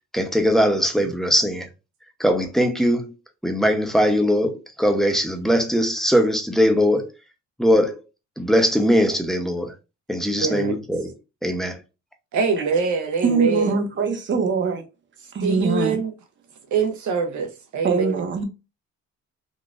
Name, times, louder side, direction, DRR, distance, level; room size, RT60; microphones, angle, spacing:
voice 1, 0.1-1.7 2.2-3.1 3.4-7.1 7.6-8.0 8.4-9.7 10.1-11.1 11.4-11.8, equal, ahead, 0.7 m, -20 dB
voice 2, 10.4-10.8 12.3-13.8 15.4-16.1 16.7-18.2, right 5 dB, 70° right, 0.8 m, -24 dB
voice 3, 13.2-14.8 15.3-16.0 17.8-18.4, right 5 dB, 40° right, 0.8 m, -22 dB
3.8 x 2.4 x 2.4 m
cardioid pair, 90°, 30 cm